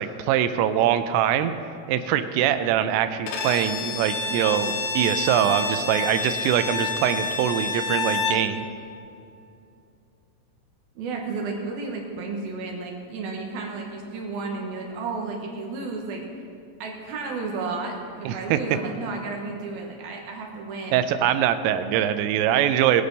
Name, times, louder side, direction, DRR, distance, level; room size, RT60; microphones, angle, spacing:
voice 1, 0.0-1.5 1.9-8.7 18.3-18.6 20.9-23.0, right 10 dB, 85° right, 10 dB, 3.2 m, -23 dB
Bowed string instrument, 3.3-8.5, left 3 dB, 70° left, 2.2 m, -28 dB
voice 2, 11.0-16.2 16.8-21.0, right 3 dB, 70° right, 0 dB, 2.4 m, -32 dB
21.0 x 8.5 x 4.1 m, 2.6 s
omnidirectional pair, 5.8 m